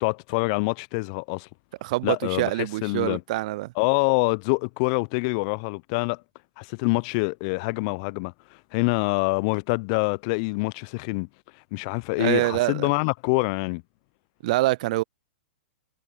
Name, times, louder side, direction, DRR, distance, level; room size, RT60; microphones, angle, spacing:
voice 1, 0.0-1.5 2.0-2.5 2.8-3.2 3.8-6.2 6.6-8.3 8.7-11.3 11.7-13.8, left 31 dB, 45° left, 0.9 m, -25 dB
voice 2, 1.8-3.7 12.2-12.9 14.4-15.0, right 18 dB, 50° right, 0.5 m, -25 dB
figure-of-eight pair, 110°, 5 cm